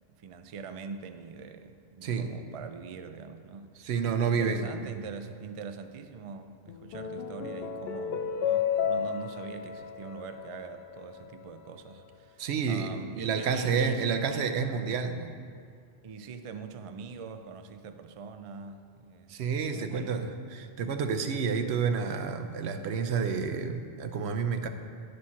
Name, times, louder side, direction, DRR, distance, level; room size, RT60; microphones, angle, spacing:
voice 1, 0.2-3.9 4.2-14.5 16.0-19.4 19.7-20.2, right 5 dB, 55° right, 8 dB, 0.3 m, -43 dB
voice 2, 2.0-2.4 3.8-4.9 12.4-15.3 19.3-24.7, right 5 dB, 80° right, 7 dB, 0.9 m, -30 dB
sound 1, 6.7-11.3, left 8 dB, 70° left, 0.8 m, -33 dB
9.7 x 5.1 x 5.7 m, 2.2 s
omnidirectional pair, 1.1 m